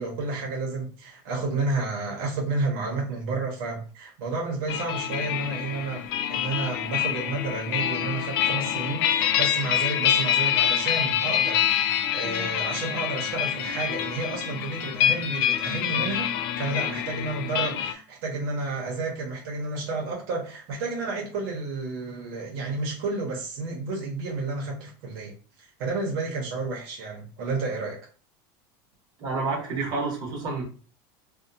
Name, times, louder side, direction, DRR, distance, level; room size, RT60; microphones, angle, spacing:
voice 1, 0.0-16.3 16.6-25.3 25.8-28.0, right 3 dB, 70° right, 0.8 m, -31 dB
sound 1, 4.7-17.9, left 10 dB, 90° left, 0.4 m, -26 dB
voice 2, 29.2-30.6, right 3 dB, 35° right, 1.0 m, -29 dB
2.7 x 2.1 x 2.7 m
supercardioid pair, 145°, 12 cm